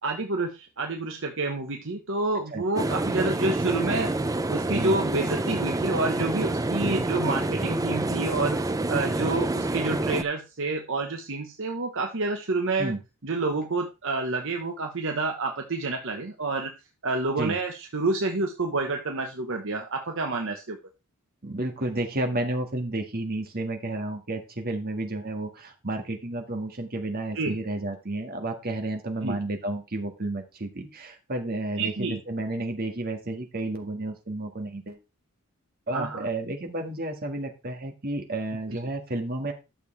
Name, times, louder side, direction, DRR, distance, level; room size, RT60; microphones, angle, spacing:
voice 1, 0.0-4.1 4.5-8.6 8.9-12.9 13.2-16.7 17.0-20.8 27.3-27.6 29.2-29.4 31.8-32.2 35.9-36.3 38.7-38.8, right 3 dB, 60° right, 3 dB, 1.1 m, -28 dB
sound 1, 2.8-10.2, right 2 dB, 15° right, 0.4 m, -27 dB
voice 2, 21.4-35.0 35.9-39.5, right 2 dB, 45° right, 3 dB, 1.9 m, -31 dB
11.5 x 6.9 x 3.4 m, 0.27 s
head